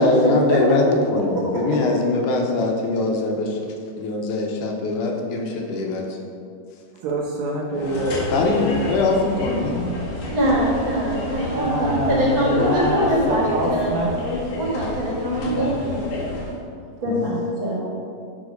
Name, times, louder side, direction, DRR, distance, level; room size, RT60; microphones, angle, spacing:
voice 1, 0.0-3.6 4.0-6.0 7.7-7.9 8.3-9.9 17.1-17.2, left 2 dB, 80° left, 1 dB, 2.3 m, -22 dB
voice 2, 7.0-8.3 11.5-14.2 15.4-15.8, right 1 dB, 70° right, -2 dB, 1.9 m, -25 dB
sound 1, 7.7-16.6, left 2 dB, 55° left, 2.1 m, -29 dB
voice 3, 10.3-13.5 13.7-13.9 14.6-16.1 17.0-17.8, equal, 45° right, -5 dB, 1.9 m, -23 dB
11.5 x 3.9 x 5.1 m, 2.4 s
omnidirectional pair, 3.7 m